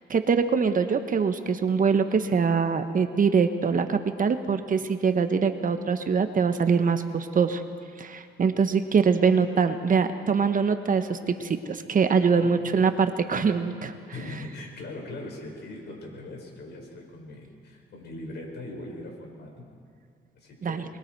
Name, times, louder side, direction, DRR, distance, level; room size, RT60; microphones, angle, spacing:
voice 1, 0.1-7.6 8.0-13.9 20.6-20.8, right 5 dB, 45° right, 9 dB, 1.1 m, -23 dB
voice 2, 14.1-19.6 20.4-20.8, left 2 dB, 60° left, 0 dB, 5.6 m, -40 dB
26.0 x 21.5 x 4.7 m, 2.2 s
cardioid pair, 90°, 20 cm